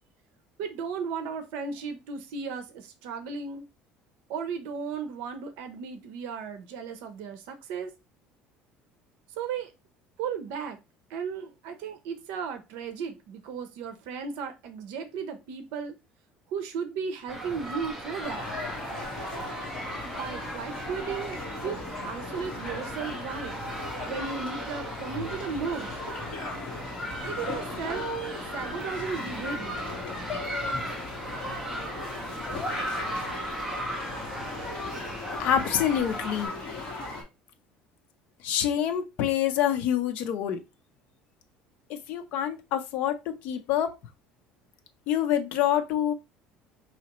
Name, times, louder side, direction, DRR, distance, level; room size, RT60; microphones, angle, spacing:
voice 1, 0.6-3.7 4.3-7.9 9.4-9.7 10.2-10.8 11.1-16.0 16.5-18.4 20.0-21.4 21.6-23.5 24.1-25.9 27.3-28.0 28.5-29.9 30.6-30.9, right 6 dB, 70° right, 0.7 m, -35 dB
sound 1, 17.3-36.5, equal, 5° right, 0.7 m, -37 dB
sound 2, 18.2-37.2, left 2 dB, 30° left, 1.5 m, -38 dB
voice 2, 35.4-36.5 38.4-40.6 41.9-43.9 45.1-46.1, left 10 dB, 50° left, 0.6 m, -26 dB
4.9 x 2.8 x 3.0 m
cardioid pair, 180°, 3 cm